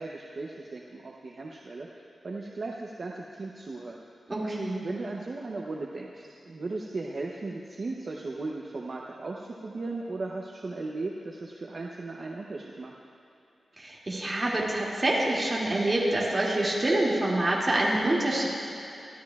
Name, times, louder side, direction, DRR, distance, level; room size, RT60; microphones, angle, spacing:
voice 1, 0.0-4.0 4.8-12.9, right 3 dB, 45° right, -2 dB, 0.8 m, -37 dB
voice 2, 4.3-4.8 13.8-18.5, right 1 dB, 25° right, -5 dB, 2.4 m, -26 dB
23.5 x 13.0 x 2.4 m, 2.8 s
wide cardioid pair, 165°, 0 cm